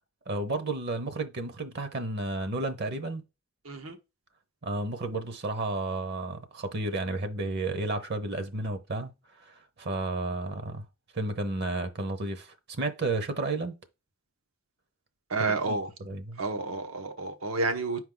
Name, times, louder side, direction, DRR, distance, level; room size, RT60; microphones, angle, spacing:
voice 1, 0.3-3.2 4.6-9.1 9.4-10.9 11.1-13.8 15.6-16.4, right 2 dB, 55° right, 0.8 m, -32 dB
voice 2, 3.6-4.0 15.3-15.9 16.4-18.0, right 3 dB, 90° right, 1.2 m, -30 dB
6.0 x 4.7 x 3.8 m
head